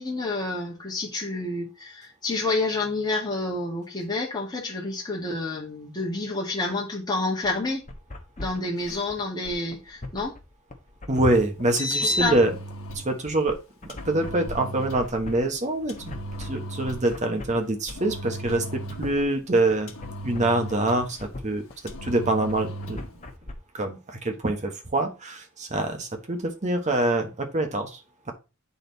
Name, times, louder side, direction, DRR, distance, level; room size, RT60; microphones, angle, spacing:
voice 1, 0.0-7.8 8.4-10.3 12.0-12.4, left 2 dB, 20° left, 1.8 m, -29 dB
sound 1, 7.4-23.5, left 2 dB, 35° left, 1.1 m, -41 dB
voice 2, 11.1-12.5 13.0-13.6 13.8-16.1 16.4-19.9 20.2-21.6 22.0-23.0 23.7-28.0, right 2 dB, 35° right, 1.2 m, -25 dB
Engine, 11.6-13.1 13.9-15.1 15.9-17.2 17.9-19.2 19.9-21.2 21.9-23.1, left 1 dB, 65° left, 1.2 m, -34 dB
8.8 x 4.2 x 4.0 m
head